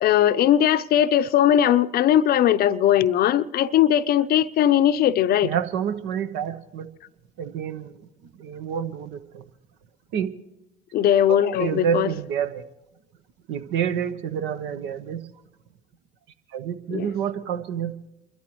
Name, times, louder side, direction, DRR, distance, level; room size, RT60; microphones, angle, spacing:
voice 1, 0.0-5.5 10.9-12.1 16.9-17.1, left 10 dB, 45° left, 0.6 m, -19 dB
voice 2, 5.4-6.9 7.4-8.0 8.4-9.4 10.1-10.3 11.6-12.6 13.5-15.2 16.5-17.9, right 8 dB, 60° right, 1.0 m, -28 dB
29.0 x 12.5 x 3.1 m
hypercardioid pair, 70°, 21 cm